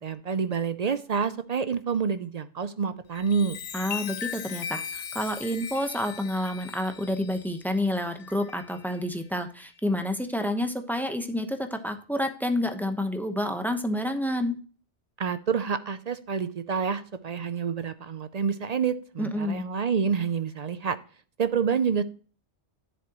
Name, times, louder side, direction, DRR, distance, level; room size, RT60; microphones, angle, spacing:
voice 1, 0.0-3.6 15.2-21.0 21.4-22.0, right 6 dB, 50° right, 12 dB, 0.5 m, -28 dB
Chime, 3.0-9.0 9.6-9.9, left 7 dB, 50° left, 0.7 m, -39 dB
voice 2, 3.7-14.6 19.2-19.6, left 1 dB, ahead, 7 dB, 0.8 m, -29 dB
10.5 x 7.5 x 2.9 m, 0.40 s
omnidirectional pair, 1.2 m